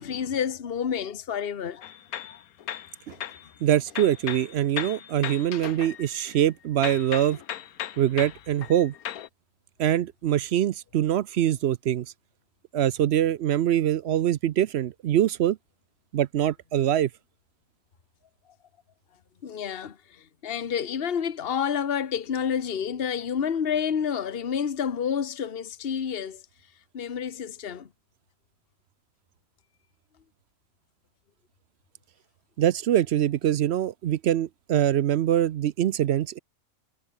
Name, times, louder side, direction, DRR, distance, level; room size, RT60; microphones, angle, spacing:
voice 1, 0.0-1.9 2.2-2.4 19.4-20.0 20.4-26.4 26.9-27.9, left 7 dB, 45° left, 1.3 m, -29 dB
sound 1, 1.8-3.5 3.9-6.5 6.8-9.3, left 11 dB, 80° left, 1.4 m, -37 dB
voice 2, 3.6-7.4 8.0-8.9 9.8-12.1 12.7-15.6 16.1-17.1 32.6-36.4, right 11 dB, 65° right, 0.7 m, -24 dB
omnidirectional pair, 1.5 m